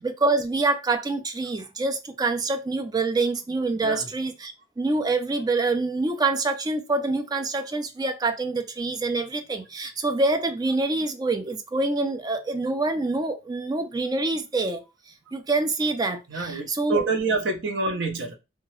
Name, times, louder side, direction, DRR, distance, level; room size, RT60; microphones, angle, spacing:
voice 1, 0.0-14.8 15.3-17.0, right 3 dB, 20° right, 0.3 m, -26 dB
voice 2, 16.3-18.3, right 3 dB, 60° right, 0.6 m, -27 dB
2.8 x 2.2 x 3.0 m
head